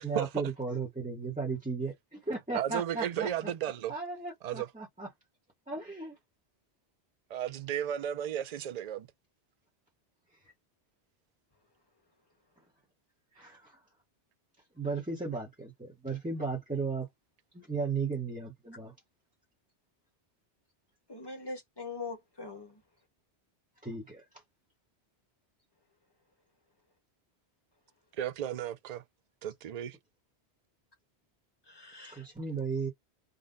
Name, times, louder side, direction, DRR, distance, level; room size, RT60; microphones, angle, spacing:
voice 1, 0.0-3.5 3.9-5.1 5.7-6.1 13.4-13.8 14.8-17.1 17.5-18.9 23.8-24.2 32.1-32.9, right 4 dB, 10° right, 0.8 m, -35 dB
voice 2, 2.5-3.9 4.4-4.7 7.3-9.1 28.2-29.0 29.4-30.0, right 10 dB, 50° right, 0.5 m, -34 dB
voice 3, 21.1-22.8 31.6-32.3, left 3 dB, 25° left, 1.2 m, -42 dB
3.8 x 2.2 x 3.8 m
omnidirectional pair, 1.1 m